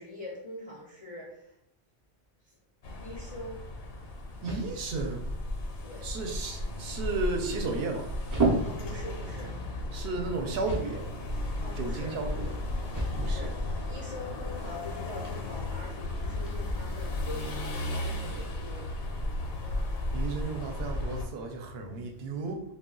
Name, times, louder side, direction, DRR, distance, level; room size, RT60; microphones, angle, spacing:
voice 1, 0.0-1.6 2.4-2.6 3.0-3.6 5.8-6.1 8.6-9.6 11.6-12.1 13.2-18.9, left 2 dB, 45° left, -5 dB, 0.5 m, -44 dB
sound 1, 2.8-21.3, left 1 dB, 70° left, 0.8 m, -35 dB
sound 2, 3.1-16.5, right 2 dB, 30° right, 0.3 m, -37 dB
voice 2, 4.4-5.3 6.0-8.1 9.9-11.1 11.8-12.5 13.2-13.5 20.1-22.6, right 3 dB, 70° right, 3 dB, 0.7 m, -34 dB
2.2 x 2.1 x 3.6 m, 0.77 s
omnidirectional pair, 1.1 m